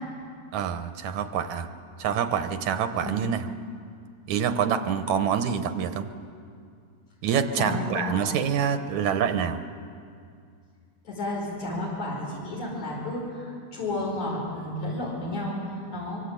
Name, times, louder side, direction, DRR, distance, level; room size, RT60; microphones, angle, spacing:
voice 1, 0.5-1.7 2.0-3.5 4.3-6.1 7.2-9.6, right 7 dB, 75° right, 9 dB, 2.4 m, -26 dB
voice 2, 7.5-8.2 11.0-16.2, left 1 dB, 70° left, -4 dB, 6.4 m, -32 dB
25.0 x 24.0 x 8.5 m, 2.3 s
omnidirectional pair, 3.4 m